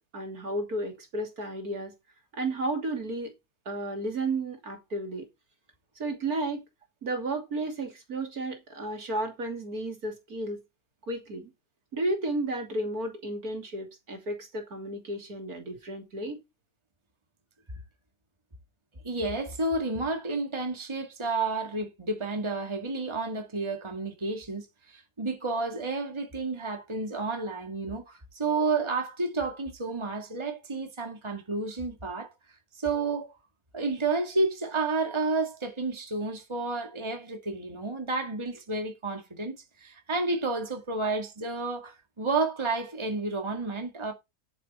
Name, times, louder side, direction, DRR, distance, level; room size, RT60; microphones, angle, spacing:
voice 1, 0.1-1.9 2.3-3.3 3.7-5.3 6.0-6.6 7.0-10.6 11.1-11.5 11.9-16.4, right 2 dB, 60° right, 3.2 m, -33 dB
voice 2, 19.0-32.3 32.7-33.4 33.7-44.1, right 3 dB, 15° right, 2.1 m, -31 dB
10.0 x 9.4 x 4.3 m
omnidirectional pair, 1.7 m